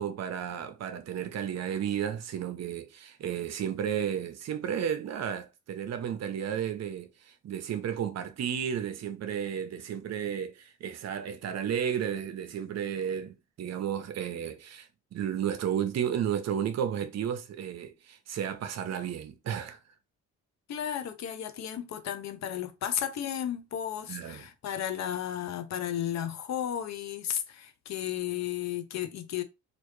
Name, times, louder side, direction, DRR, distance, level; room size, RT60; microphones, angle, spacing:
voice 1, 0.0-19.8 24.1-24.5, right 9 dB, 60° right, 0.7 m, -33 dB
voice 2, 20.7-29.4, left 10 dB, 65° left, 0.7 m, -34 dB
3.4 x 2.6 x 3.1 m
cardioid pair, 90°, 30 cm